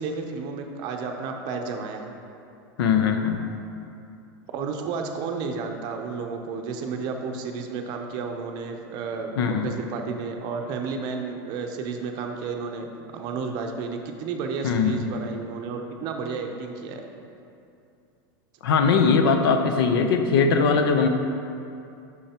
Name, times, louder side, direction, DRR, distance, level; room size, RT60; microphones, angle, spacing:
voice 1, 0.0-2.1 4.5-17.0, right 5 dB, 35° right, 4 dB, 0.6 m, -32 dB
voice 2, 2.8-3.5 9.4-9.7 14.6-15.0 18.6-21.1, left 5 dB, 85° left, 6 dB, 0.7 m, -20 dB
8.7 x 6.3 x 2.9 m, 2.6 s
supercardioid pair, 160°, 12 cm